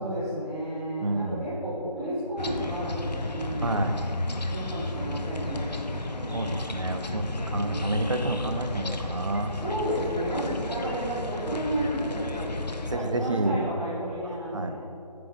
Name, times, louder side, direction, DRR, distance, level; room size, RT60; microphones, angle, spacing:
voice 1, 0.0-3.8 4.5-6.6 7.4-8.4 9.5-14.8, right 1 dB, ahead, -19 dB, 0.9 m, -32 dB
voice 2, 1.0-1.5 3.6-3.9 6.3-9.5 12.9-13.7 14.5-14.8, right 2 dB, 45° right, 6 dB, 0.6 m, -29 dB
sound 1, 2.4-13.0, left 2 dB, 75° left, 0.8 m, -33 dB
9.5 x 5.9 x 3.7 m, 2.8 s
figure-of-eight pair, 165°, 21 cm